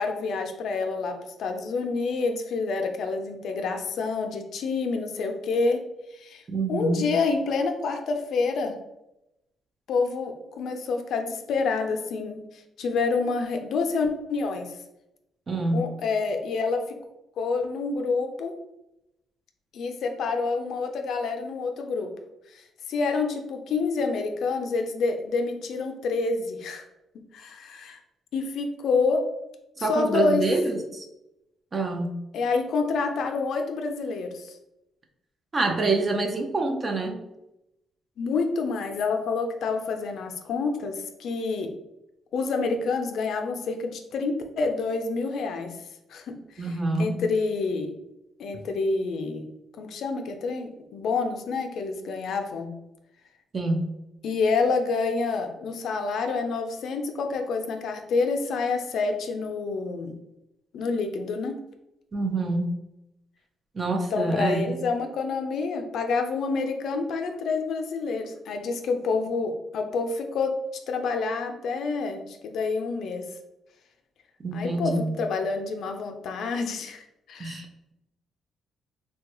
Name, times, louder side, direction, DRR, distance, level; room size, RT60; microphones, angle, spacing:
voice 1, 0.0-5.8 6.1-6.4 6.7-8.7 9.9-14.7 15.7-17.0 17.4-18.5 19.7-22.1 22.5-26.8 27.3-28.0 28.3-29.3 29.8-30.4 32.3-34.6 38.2-41.7 42.3-45.8 46.1-46.7 47.0-47.9 48.4-49.5 49.8-52.7 54.2-60.1 60.7-61.6 64.1-70.6 70.9-73.3 74.5-77.6, left 4 dB, 70° left, 5 dB, 0.4 m, -28 dB
voice 2, 6.5-7.0 15.5-15.9 29.8-31.1 31.7-32.1 35.5-37.3 46.6-47.1 53.5-53.9 62.1-62.7 63.7-64.7 74.4-75.1 77.4-77.7, right 2 dB, 35° right, 4 dB, 0.6 m, -26 dB
3.2 x 2.2 x 3.0 m, 0.88 s
cardioid pair, 90°, 0 cm